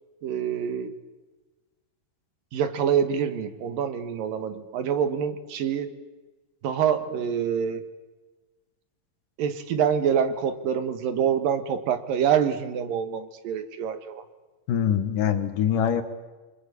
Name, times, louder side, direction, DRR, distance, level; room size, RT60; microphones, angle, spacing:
voice 1, 0.2-1.0 2.5-5.9 6.6-7.9 9.4-14.2, right 8 dB, 80° right, 10 dB, 3.3 m, -26 dB
voice 2, 14.7-16.0, left 9 dB, 70° left, 9 dB, 3.2 m, -23 dB
26.0 x 25.0 x 8.5 m, 1.2 s
omnidirectional pair, 4.0 m